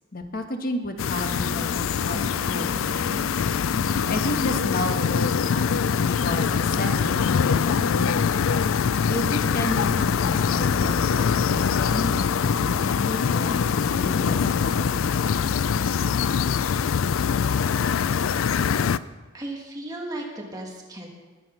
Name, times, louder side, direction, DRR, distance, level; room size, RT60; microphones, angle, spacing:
voice 1, 0.1-3.4 3.8-8.2 9.1-13.6 13.9-15.4, left 1 dB, 45° left, 5 dB, 1.4 m, -32 dB
sound 1, 1.0-19.0, left 6 dB, 90° left, 0.4 m, -23 dB
sound 2, 1.2-16.4, left 1 dB, 10° left, 3.4 m, -41 dB
voice 2, 19.3-21.1, right 1 dB, 20° right, 0 dB, 1.6 m, -35 dB
20.5 x 7.6 x 5.7 m, 1.3 s
head